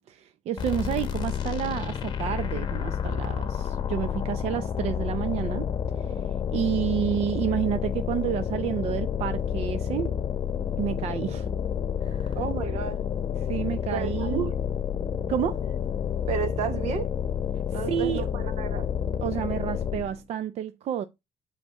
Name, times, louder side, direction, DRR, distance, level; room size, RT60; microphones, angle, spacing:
voice 1, 0.0-5.7 6.0-6.2 6.5-10.1 10.8-11.5 12.0-12.4 13.5-14.5 15.3-15.6 17.7-18.3 19.2-21.0, right 10 dB, 70° right, 0.5 m, -30 dB
sound 1, 0.6-20.2, left 8 dB, 40° left, 1.1 m, -29 dB
voice 2, 12.3-13.0 13.9-14.5 16.3-17.1 17.7-18.9, right 8 dB, 85° right, 1.1 m, -32 dB
8.1 x 4.1 x 4.5 m
cardioid pair, 155°, 11 cm